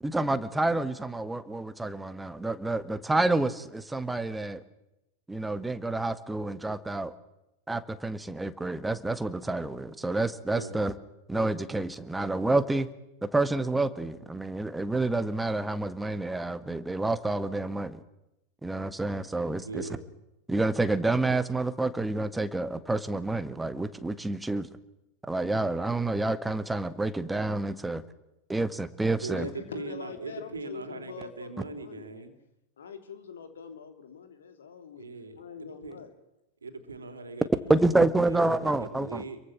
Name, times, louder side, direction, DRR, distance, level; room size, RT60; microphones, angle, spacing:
voice 1, 0.0-4.6 5.3-7.1 7.7-10.9 11.3-12.9 13.2-18.0 18.6-19.9 20.5-24.7 25.3-28.0 28.5-29.5 37.7-39.2, right 2 dB, 5° right, 13 dB, 1.6 m, -28 dB
voice 2, 19.6-20.1 29.2-32.3 35.0-36.0 36.6-39.4, right 3 dB, 75° right, 8 dB, 3.3 m, -40 dB
voice 3, 29.3-32.1 32.8-35.1 35.4-36.1, left 6 dB, 65° left, 8 dB, 3.2 m, -43 dB
27.5 x 23.5 x 7.3 m, 0.91 s
figure-of-eight pair, 90°, 0 cm